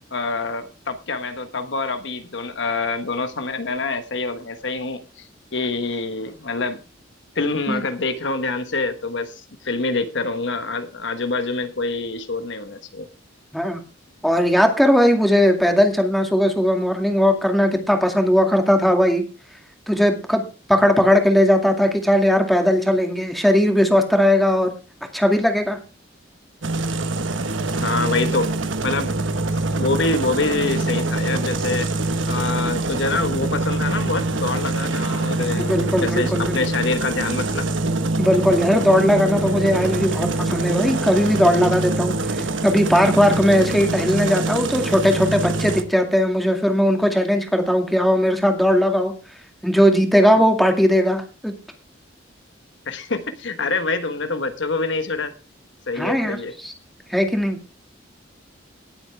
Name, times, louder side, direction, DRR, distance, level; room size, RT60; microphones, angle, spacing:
voice 1, 0.1-6.8 7.3-13.1 27.8-28.5 28.8-29.1 29.7-31.9 32.3-37.7 52.9-55.3 55.9-56.5, left 3 dB, 70° left, 9 dB, 1.3 m, -26 dB
voice 2, 14.2-19.3 19.9-20.4 20.7-24.7 25.1-25.8 35.6-36.6 38.2-49.1 49.6-51.5 56.0-56.7 57.1-57.6, equal, ahead, 4 dB, 2.2 m, -18 dB
sound 1, 26.6-45.8, right 2 dB, 80° right, 1.2 m, -24 dB
18.5 x 7.9 x 3.4 m, 0.32 s
head